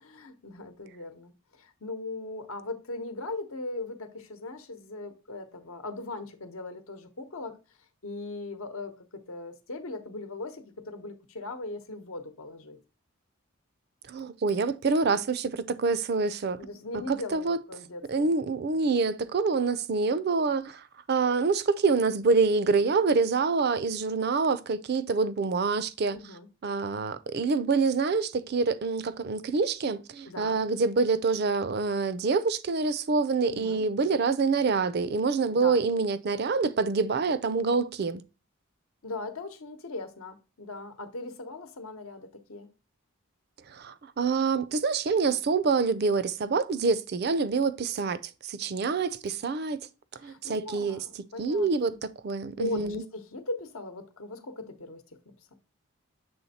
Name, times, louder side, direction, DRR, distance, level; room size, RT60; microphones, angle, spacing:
voice 1, 0.0-7.6 8.0-8.9 9.3-12.8 16.5-18.3 26.1-26.5 30.2-30.6 33.4-33.8 35.5-35.8 39.0-42.7 50.2-51.7 52.6-55.0, left 2 dB, 80° left, 0.9 m, -39 dB
voice 2, 14.1-16.6 17.1-17.6 18.1-26.2 26.6-38.2 43.7-49.8 50.2-51.0 51.4-51.9 52.2-53.0, right 4 dB, 50° right, 0.4 m, -26 dB
7.1 x 3.4 x 4.1 m
head